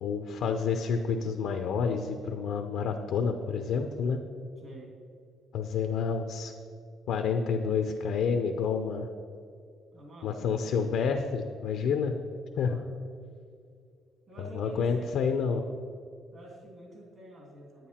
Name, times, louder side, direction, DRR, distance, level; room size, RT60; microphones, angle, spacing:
voice 1, 0.0-4.2 5.5-6.5 7.1-9.1 10.2-12.2 12.6-12.8 14.4-15.6, left 6 dB, 70° left, 5 dB, 0.6 m, -29 dB
voice 2, 4.6-4.9 9.9-10.7 12.5-13.1 14.3-15.3 16.3-17.9, right 1 dB, 45° right, 0 dB, 2.6 m, -48 dB
9.3 x 9.2 x 4.3 m, 2.3 s
cardioid pair, 135°, 0 cm